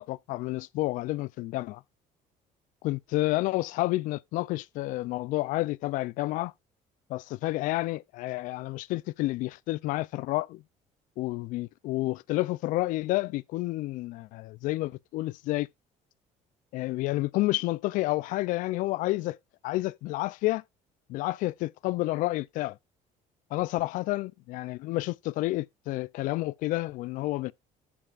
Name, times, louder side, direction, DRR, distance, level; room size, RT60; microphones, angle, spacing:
voice 1, 0.0-1.8 2.8-6.5 7.1-10.6 11.2-15.7 16.7-19.4 19.6-20.6 21.1-22.8 23.5-27.5, left 18 dB, 65° left, 0.4 m, -30 dB
14.5 x 5.4 x 2.4 m
cardioid pair, 165°, 15 cm